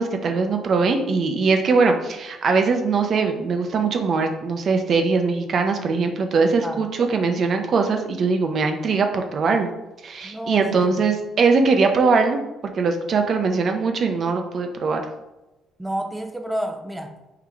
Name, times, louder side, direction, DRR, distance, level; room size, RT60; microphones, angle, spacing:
voice 1, 0.0-9.7 10.0-12.4 12.7-15.0, right 4 dB, 55° right, 5 dB, 0.7 m, -21 dB
voice 2, 10.2-11.0 15.8-17.1, right 1 dB, 5° right, 5 dB, 0.6 m, -30 dB
3.9 x 2.8 x 4.7 m, 1.0 s
supercardioid pair, 70°, 0 cm